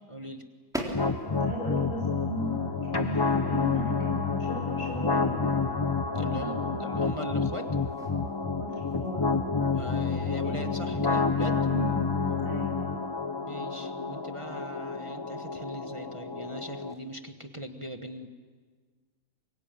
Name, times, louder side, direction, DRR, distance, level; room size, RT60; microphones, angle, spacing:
voice 1, 0.1-0.4 6.1-7.7 9.7-11.7 13.4-18.3, right 1 dB, 20° right, 6 dB, 1.2 m, -40 dB
sound 1, 0.7-17.2, equal, ahead, 3.5 m, -47 dB
sound 2, 0.9-16.9, left 4 dB, 20° left, 0.7 m, -29 dB
voice 2, 1.3-5.4 6.1-7.0 8.0-9.5 10.4-10.9 11.6-12.8, equal, 60° left, -1 dB, 8.4 m, -36 dB
25.0 x 22.5 x 8.9 m, 1.5 s
omnidirectional pair, 1.6 m